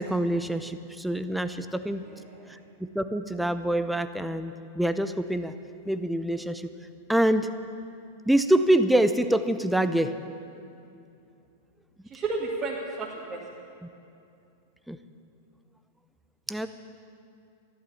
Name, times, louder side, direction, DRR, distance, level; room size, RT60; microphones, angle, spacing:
voice 1, 0.0-2.0 2.8-5.5 5.9-6.7 7.1-7.5 8.3-10.2 14.9-15.0 16.5-16.7, right 1 dB, ahead, 10 dB, 0.7 m, -25 dB
voice 2, 2.0-2.6 12.1-13.4, right 3 dB, 25° right, -5 dB, 2.1 m, -33 dB
14.0 x 12.0 x 7.1 m, 2.6 s
figure-of-eight pair, 95°, 0 cm